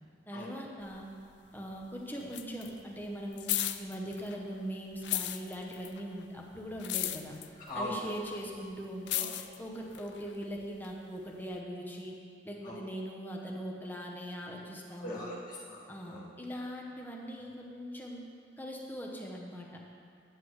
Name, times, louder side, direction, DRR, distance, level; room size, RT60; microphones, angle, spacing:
voice 1, 0.3-1.1 1.5-3.5 3.8-7.4 7.7-12.2 12.4-15.2 15.9-18.3 18.6-19.8, equal, 10° left, -1 dB, 0.8 m, -41 dB
sound 1, 0.8-4.6 4.9-10.9 11.5-11.6, left 13 dB, 70° left, 0.4 m, -36 dB
voice 2, 7.6-8.0 9.2-9.3 12.6-12.8 15.0-16.2, left 1 dB, 45° left, -7 dB, 2.0 m, -40 dB
9.2 x 9.1 x 3.2 m, 2.3 s
head